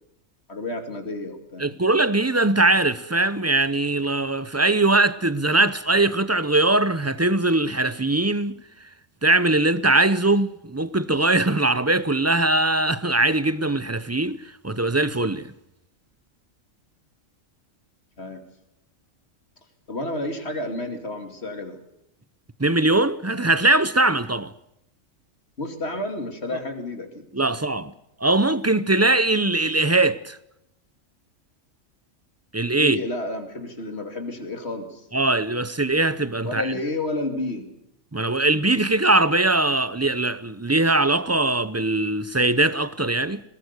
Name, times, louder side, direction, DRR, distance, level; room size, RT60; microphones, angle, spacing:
voice 1, 0.5-1.8 18.2-18.4 19.9-21.8 25.6-27.6 32.8-35.1 36.4-37.7, left 2 dB, 55° left, 2.8 m, -31 dB
voice 2, 1.6-8.6 9.2-14.4 14.6-15.5 22.6-24.5 27.3-27.9 28.2-30.4 32.5-33.0 35.1-36.7 38.1-43.4, right 2 dB, 20° right, 0.5 m, -21 dB
21.0 x 18.0 x 8.1 m
omnidirectional pair, 1.3 m